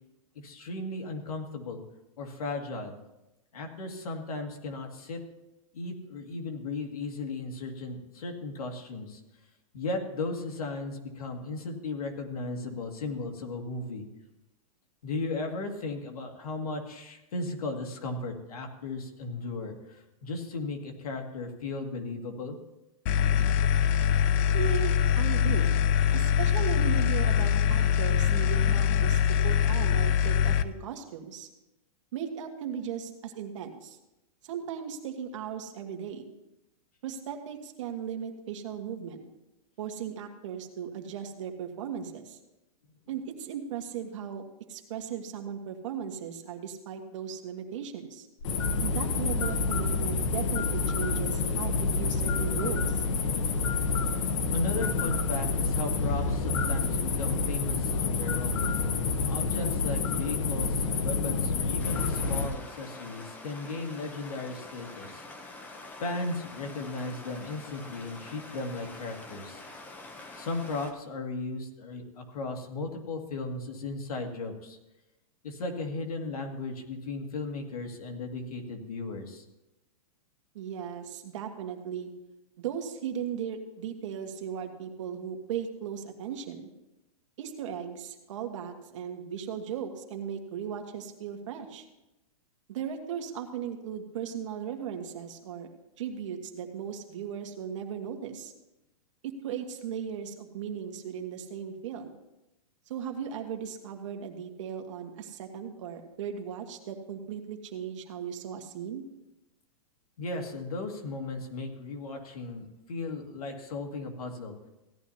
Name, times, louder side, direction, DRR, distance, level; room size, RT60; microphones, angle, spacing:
voice 1, 0.4-1.8 2.2-2.9 3.5-5.2 5.7-9.2 9.7-14.1 15.0-22.6 43.1-43.2 54.5-58.7 59.3-65.2 66.0-69.6 70.3-74.8 75.4-79.4 110.2-114.6, left 3 dB, 90° left, 3 dB, 2.1 m, -36 dB
sound 1, 23.1-30.6, left 8 dB, 25° left, 0.3 m, -24 dB
voice 2, 24.2-25.7 26.1-31.5 32.1-34.0 34.4-36.3 37.0-39.2 39.8-42.4 43.1-44.4 44.7-48.3 48.8-53.0 80.5-82.1 82.6-86.7 87.4-91.9 92.7-95.7 96.0-98.5 99.2-102.2 102.9-109.0, right 8 dB, 55° right, 5 dB, 1.6 m, -37 dB
sound 2, 48.4-62.5, left 4 dB, 55° left, 1.1 m, -28 dB
Stream, 61.8-70.9, left 2 dB, 10° left, 0.7 m, -46 dB
16.5 x 11.0 x 2.8 m, 0.95 s
supercardioid pair, 160°, 18 cm